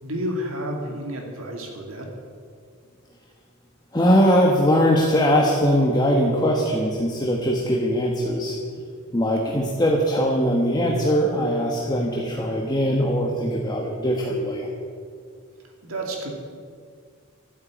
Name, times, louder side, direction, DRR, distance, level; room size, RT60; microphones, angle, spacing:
voice 1, 0.0-2.1 15.8-16.3, equal, 70° right, 1 dB, 2.3 m, -30 dB
voice 2, 3.9-8.6 9.1-14.7, equal, 20° left, -1 dB, 1.4 m, -21 dB
13.0 x 9.5 x 8.5 m, 2.1 s
head